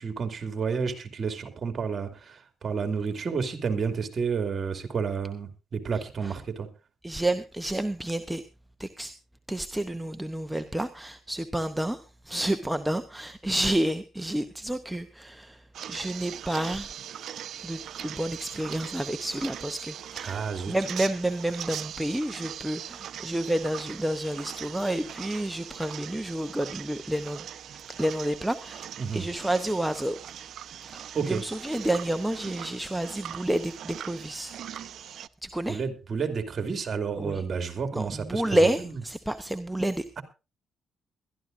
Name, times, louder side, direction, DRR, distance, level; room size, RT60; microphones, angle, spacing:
voice 1, 0.0-6.7 20.2-20.8 29.0-29.2 31.1-31.4 35.7-38.7, right 5 dB, 45° right, 6 dB, 2.6 m, -30 dB
voice 2, 7.0-8.4 8.8-9.1 9.5-16.9 17.6-30.2 30.8-34.5 35.4-35.8 37.2-37.4 37.9-40.2, right 1 dB, 5° right, 8 dB, 0.8 m, -30 dB
sound 1, 15.7-35.3, right 10 dB, 70° right, 0.6 m, -41 dB
21.5 x 13.0 x 2.6 m, 0.29 s
cardioid pair, 90°, 0 cm